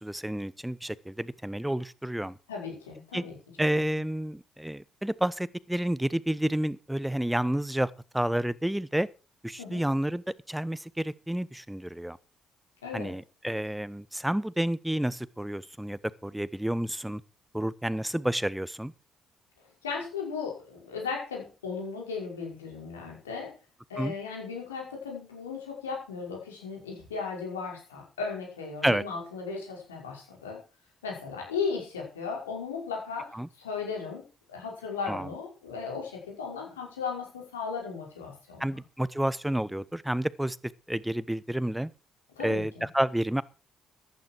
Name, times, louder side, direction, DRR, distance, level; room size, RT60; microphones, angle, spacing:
voice 1, 0.0-2.4 3.1-3.2 3.6-9.1 9.4-12.2 12.9-17.2 17.5-18.9 24.0-24.1 28.8-29.0 33.3-33.5 35.1-35.3 38.6-40.6 40.9-41.9 42.4-43.4, right 1 dB, 5° right, 1.0 m, -30 dB
voice 2, 2.5-3.3 9.6-9.8 12.8-13.1 19.8-23.5 23.9-30.6 31.0-38.6 42.4-42.8, left 5 dB, 85° left, 5.7 m, -36 dB
14.5 x 12.0 x 4.8 m
hypercardioid pair, 45°, 0 cm